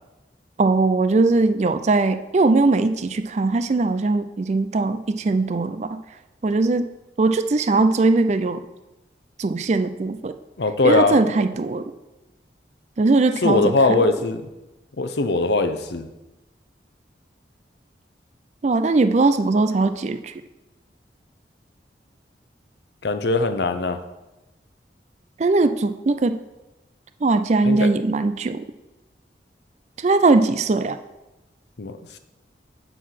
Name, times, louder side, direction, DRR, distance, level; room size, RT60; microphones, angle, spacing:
voice 1, 0.6-6.0 6.4-6.9 7.2-8.6 9.4-10.4 10.8-11.9 13.0-14.0 18.6-20.3 25.4-26.4 27.2-28.6 30.0-31.0, right 3 dB, 40° right, 10 dB, 0.4 m, -20 dB
voice 2, 10.6-11.2 13.4-14.4 15.0-16.1 23.0-24.0 27.7-27.9 31.8-32.2, left 3 dB, 70° left, 9 dB, 0.7 m, -20 dB
8.0 x 4.6 x 5.8 m, 1.0 s
head